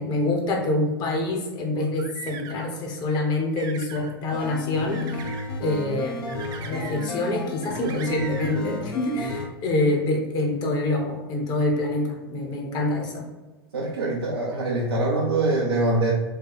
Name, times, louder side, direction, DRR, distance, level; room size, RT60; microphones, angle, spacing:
voice 1, 0.0-5.0 5.6-6.2 6.6-13.3, left 2 dB, 30° left, 0 dB, 1.1 m, -26 dB
sound 1, 1.7-2.8 3.3-4.1 4.9-5.5 6.3-7.3 7.6-8.6, right 6 dB, 30° right, 0.6 m, -40 dB
sound 2, 4.3-9.5, left 3 dB, 60° left, 0.9 m, -33 dB
voice 2, 13.7-16.1, right 2 dB, 75° right, -5 dB, 0.8 m, -24 dB
4.7 x 2.3 x 4.8 m, 1.2 s
figure-of-eight pair, 95°, 13 cm